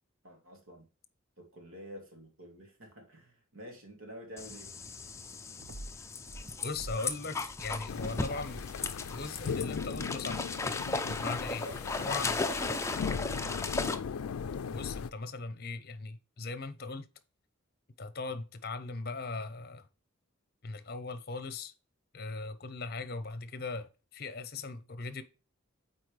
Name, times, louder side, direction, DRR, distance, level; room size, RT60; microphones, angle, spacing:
voice 1, 0.2-0.8 1.4-4.7 11.6-13.1, equal, 70° right, 2.3 m, -48 dB
sound 1, 4.4-14.0, left 3 dB, 15° left, 0.4 m, -36 dB
sound 2, 5.6-7.2 7.5-10.3, right 1 dB, 55° right, 0.5 m, -48 dB
voice 2, 6.6-8.6 9.1-10.5 10.9-11.6 12.0-12.3 14.7-17.1 18.0-19.9 20.6-21.7 22.1-25.2, left 3 dB, 45° left, 0.7 m, -39 dB
sound 3, 7.9-15.1, left 6 dB, 80° left, 0.4 m, -38 dB
8.4 x 4.3 x 3.2 m
head